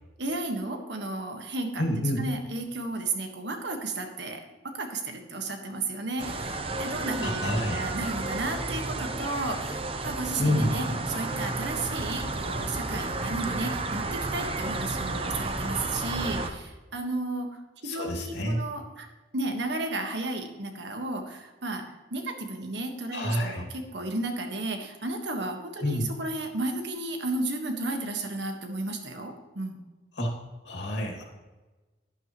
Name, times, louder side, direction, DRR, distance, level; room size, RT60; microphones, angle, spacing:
voice 1, 0.2-1.8 2.2-19.1 19.3-21.8 22.1-29.8, right 2 dB, 75° right, 4 dB, 1.6 m, -33 dB
voice 2, 1.8-2.2 7.2-7.8 10.4-10.7 17.8-18.6 23.1-23.7 25.8-26.0 30.2-30.3 30.6-31.2, left 1 dB, 70° left, 1 dB, 2.4 m, -28 dB
sound 1, 6.2-16.5, right 2 dB, 30° right, 0.7 m, -32 dB
11.5 x 11.0 x 3.1 m, 1.2 s
head